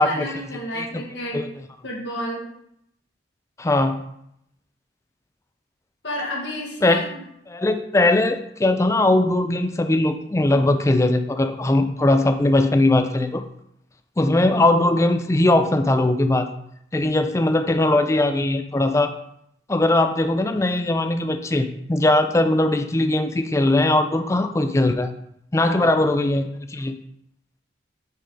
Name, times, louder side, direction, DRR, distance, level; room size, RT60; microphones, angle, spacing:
voice 1, 0.0-1.4 1.8-2.4 6.0-7.2 25.6-25.9, left 1 dB, 70° left, -3 dB, 1.7 m, -31 dB
voice 2, 3.6-4.0 6.8-7.0 7.5-13.4 14.2-16.5 16.9-19.1 19.7-25.1 25.5-27.0, left 2 dB, 15° left, 8 dB, 0.3 m, -20 dB
5.4 x 3.8 x 4.9 m, 0.76 s
head